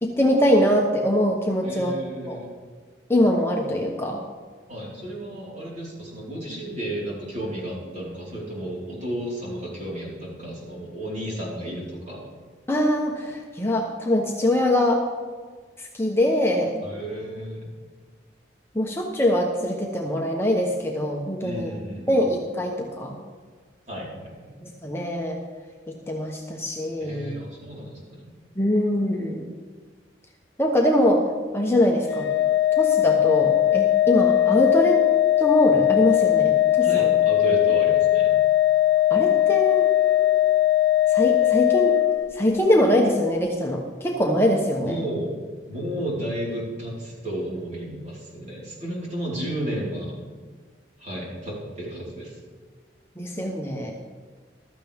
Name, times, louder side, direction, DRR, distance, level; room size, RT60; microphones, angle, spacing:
voice 1, 0.0-1.9 2.3-2.4 3.1-4.2 12.7-15.0 15.8-16.8 18.7-21.7 22.1-23.2 24.6-25.4 25.9-27.3 28.6-29.5 30.6-31.2 31.5-32.3 32.8-35.0 35.4-37.1 39.1-39.9 41.1-42.0 42.3-45.0 53.2-53.9, equal, 15° left, 0 dB, 1.0 m, -23 dB
voice 2, 1.6-2.5 4.7-12.3 16.8-17.7 21.4-22.2 23.9-24.5 27.0-28.3 36.8-38.3 44.8-45.4 45.7-50.2 51.0-52.4, right 1 dB, 40° right, -5 dB, 4.5 m, -33 dB
Organ, 32.1-42.8, left 14 dB, 70° left, 0.7 m, -20 dB
15.0 x 13.0 x 3.6 m, 1.5 s
head